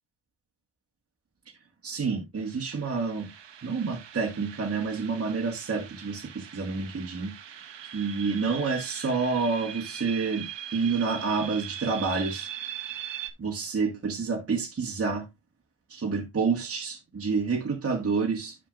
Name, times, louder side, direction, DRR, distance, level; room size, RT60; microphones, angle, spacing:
voice 1, 1.8-3.3 3.6-7.7 7.9-12.5 13.4-15.3 15.9-18.6, right 4 dB, 30° right, 1.7 m, -29 dB
sound 1, 2.4-13.3, right 10 dB, 60° right, 1.3 m, -41 dB
9.8 x 6.9 x 2.5 m
cardioid pair, 90°, 50 cm